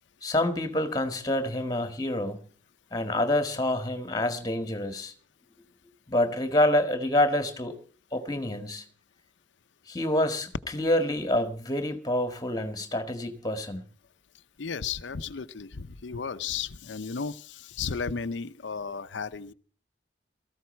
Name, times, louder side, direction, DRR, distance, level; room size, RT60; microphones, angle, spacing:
voice 1, 0.2-2.4 2.9-5.1 6.1-7.8 8.1-8.8 9.9-13.8, left 1 dB, 20° left, 8 dB, 1.7 m, -27 dB
voice 2, 14.6-19.5, left 5 dB, 90° left, 11 dB, 0.7 m, -34 dB
17.5 x 14.5 x 4.4 m, 0.43 s
head